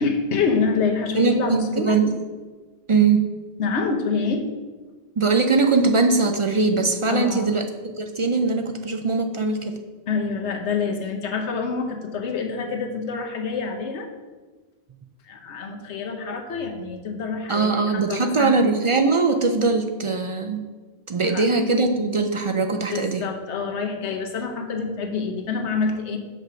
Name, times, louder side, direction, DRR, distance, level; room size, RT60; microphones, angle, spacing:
voice 1, 0.0-2.0 3.6-4.4 7.1-7.6 10.1-14.1 15.3-18.5 21.2-21.5 22.9-26.2, left 4 dB, 85° left, 4 dB, 1.2 m, -26 dB
voice 2, 1.2-2.2 2.9-3.3 5.2-9.8 17.5-20.6 21.1-23.2, right 4 dB, 45° right, 5 dB, 0.4 m, -21 dB
6.1 x 5.5 x 5.7 m, 1.3 s
omnidirectional pair, 1.1 m